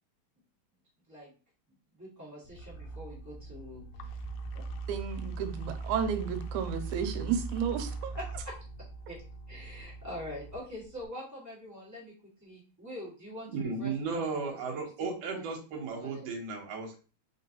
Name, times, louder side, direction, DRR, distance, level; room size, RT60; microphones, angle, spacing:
voice 1, 1.9-4.2 4.5-4.6 8.1-8.6 9.1-9.2 9.5-12.1 12.4-15.4 16.0-16.3, left 1 dB, 10° right, -6 dB, 0.9 m, -44 dB
sound 1, 2.5-11.1, right 3 dB, 80° left, 1.8 m, -40 dB
voice 2, 4.9-8.1, right 7 dB, 90° right, 8 dB, 2.0 m, -32 dB
voice 3, 13.5-17.0, right 4 dB, 65° right, 2 dB, 1.8 m, -35 dB
3.8 x 3.7 x 2.9 m, 0.36 s
omnidirectional pair, 3.4 m